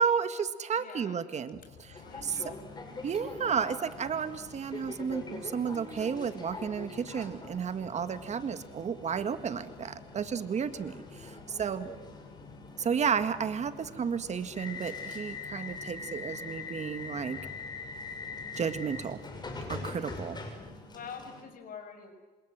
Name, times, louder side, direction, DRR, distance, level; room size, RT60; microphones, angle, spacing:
voice 1, 0.0-2.5 3.0-11.9 12.8-17.4 18.6-19.2 19.7-20.4, right 6 dB, 40° right, 11 dB, 1.8 m, -32 dB
voice 2, 0.8-1.2 1.9-2.8 20.9-22.1, left 6 dB, 55° left, 6 dB, 6.8 m, -46 dB
sound 1, 1.5-19.3, left 7 dB, 75° left, 6.5 m, -56 dB
sound 2, 1.9-21.4, left 3 dB, 25° left, 6.2 m, -43 dB
27.0 x 27.0 x 7.5 m, 1.3 s
cardioid pair, 110°, 17 cm